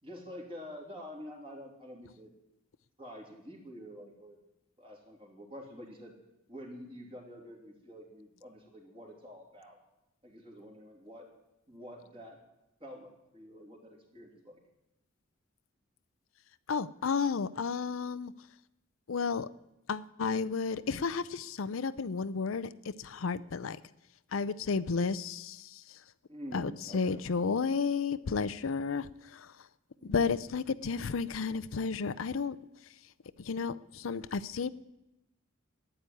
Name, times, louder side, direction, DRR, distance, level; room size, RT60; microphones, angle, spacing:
voice 1, 0.0-2.3 3.0-4.4 4.8-6.1 6.5-9.8 10.2-11.3 11.7-12.4 12.8-14.6 26.3-27.2 30.0-30.3, equal, 30° right, 0 dB, 3.3 m, -47 dB
voice 2, 16.7-18.3 19.1-19.5 19.9-23.8 24.3-26.0 26.5-29.5 30.0-32.6 33.4-34.7, left 5 dB, 80° left, 15 dB, 0.6 m, -32 dB
12.5 x 10.0 x 9.2 m, 0.92 s
head